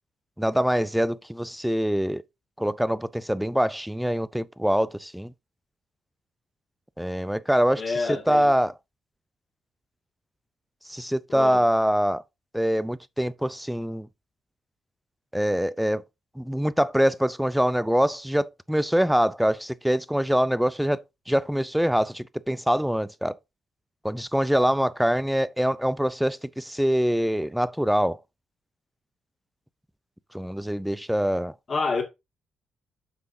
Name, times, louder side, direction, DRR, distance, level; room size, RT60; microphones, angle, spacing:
voice 1, 0.4-2.2 2.6-5.3 7.0-7.8 8.3-8.7 10.9-12.2 12.5-14.1 15.3-16.0 16.4-23.4 24.0-28.2 30.3-31.5, equal, ahead, 0.4 m, -24 dB
voice 2, 7.8-8.5 11.3-11.6 31.7-32.0, left 4 dB, 40° left, 1.9 m, -28 dB
7.6 x 5.6 x 2.6 m
cardioid pair, 90°, 0 cm